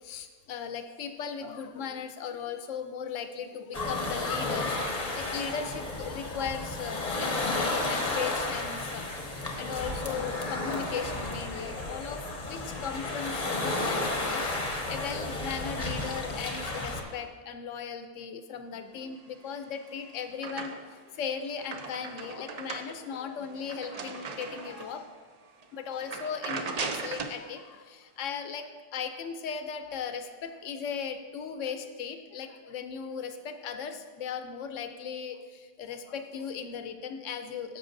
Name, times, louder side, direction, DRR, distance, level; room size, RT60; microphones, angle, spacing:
voice 1, 0.0-9.1 9.6-14.5 14.9-25.2 25.7-37.8, left 6 dB, 80° left, 8 dB, 0.9 m, -37 dB
sound 1, 3.7-17.0, left 2 dB, 35° left, 0.9 m, -32 dB
sound 2, 19.5-21.1 21.4-25.0 25.5-25.6 26.0-27.4, right 4 dB, 55° right, 0.4 m, -38 dB
10.5 x 6.9 x 2.6 m, 1.5 s
omnidirectional pair, 1.3 m